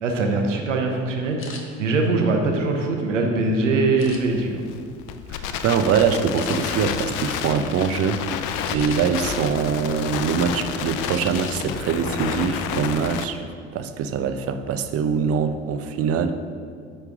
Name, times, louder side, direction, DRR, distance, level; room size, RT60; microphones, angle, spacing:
voice 1, 0.0-4.6, right 3 dB, 90° right, 3 dB, 0.8 m, -22 dB
sound 1, 1.4-1.6 2.3-3.2 4.0-4.6 5.1-5.3 5.7-5.8 6.3-6.6 8.5-9.2 9.7-10.5 11.0-11.6 11.9-12.1 12.5-12.9, left 5 dB, 35° left, 0.9 m, -41 dB
Crackle, 4.0-13.2, left 8 dB, 55° left, 0.5 m, -30 dB
voice 2, 5.3-8.2 8.7-13.5 13.7-16.4, right 6 dB, 40° right, 9 dB, 0.5 m, -23 dB
9.1 x 3.3 x 3.5 m, 2.1 s
hypercardioid pair, 60°, 36 cm